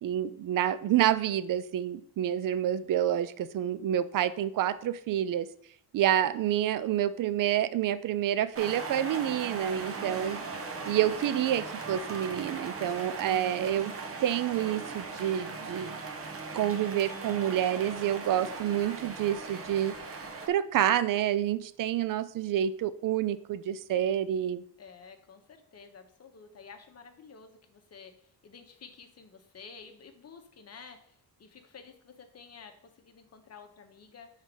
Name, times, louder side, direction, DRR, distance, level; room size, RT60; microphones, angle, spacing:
voice 1, 0.0-5.5 5.9-10.4 10.9-13.9 14.2-16.0 16.5-20.0 20.5-24.6, right 11 dB, 55° right, 15 dB, 0.5 m, -28 dB
sound 1, 8.5-20.5, right 4 dB, 35° right, 1.0 m, -39 dB
voice 2, 24.8-34.3, left 5 dB, 40° left, 5 dB, 1.0 m, -51 dB
5.5 x 4.0 x 6.1 m, 0.63 s
cardioid pair, 135°, 39 cm